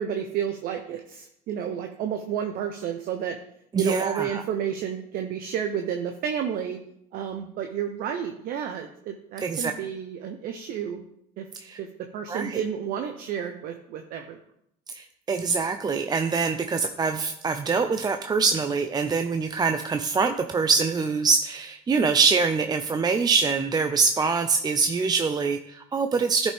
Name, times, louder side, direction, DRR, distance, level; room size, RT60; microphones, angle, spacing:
voice 1, 0.0-3.4 3.8-6.8 7.1-11.0 11.4-11.5 11.8-14.4, right 8 dB, 65° right, 5 dB, 0.8 m, -31 dB
voice 2, 3.7-4.4 9.4-9.7 11.6-11.8 12.3-12.6 14.9-26.5, right 4 dB, 25° right, 7 dB, 0.5 m, -24 dB
11.0 x 5.3 x 3.5 m, 0.74 s
supercardioid pair, 80°, 16 cm